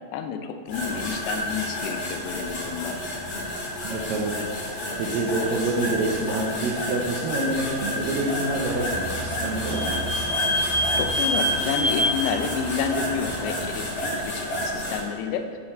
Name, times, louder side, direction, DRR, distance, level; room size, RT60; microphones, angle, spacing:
voice 1, 0.1-3.0 10.6-15.4, left 7 dB, 85° left, 7 dB, 2.8 m, -30 dB
sound 1, 0.7-15.0, left 1 dB, 45° left, 2.0 m, -30 dB
voice 2, 3.8-4.4 4.7-10.0, right 2 dB, 75° right, -1 dB, 2.2 m, -27 dB
Vehicle / Squeak, 8.2-13.8, equal, 40° right, 3.1 m, -28 dB
9.6 x 8.3 x 4.4 m, 2.2 s
omnidirectional pair, 4.8 m